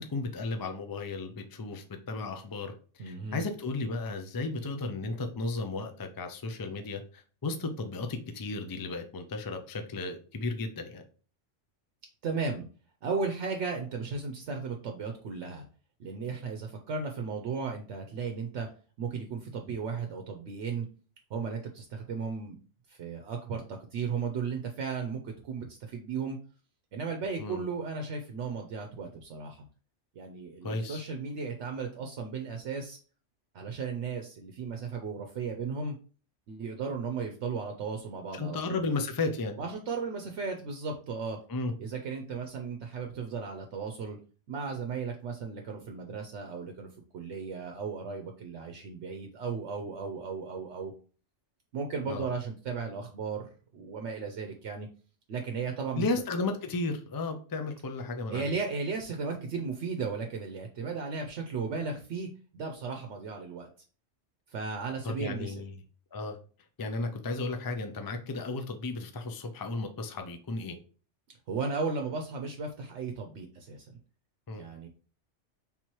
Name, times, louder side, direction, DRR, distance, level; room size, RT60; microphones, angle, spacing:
voice 1, 0.0-2.7 3.0-11.0 27.4-27.7 30.6-31.0 38.3-39.6 41.5-41.7 52.0-52.3 56.0-58.5 65.0-65.8 66.1-66.4 66.8-70.8 74.5-74.6, left 3 dB, 35° left, 6 dB, 0.3 m, -34 dB
voice 2, 3.0-3.4 12.2-12.6 13.0-15.6 16.0-18.7 19.0-20.9 21.3-22.6 22.9-26.4 26.9-29.6 30.2-33.0 33.5-35.9 36.5-38.8 39.6-41.4 41.8-44.2 44.5-46.9 47.1-50.9 51.7-54.9 55.3-56.0 58.3-63.7 64.5-65.5 71.5-73.9 74.6-74.9, right 5 dB, 75° right, 4 dB, 0.9 m, -35 dB
3.7 x 2.9 x 4.5 m, 0.38 s
omnidirectional pair, 1.2 m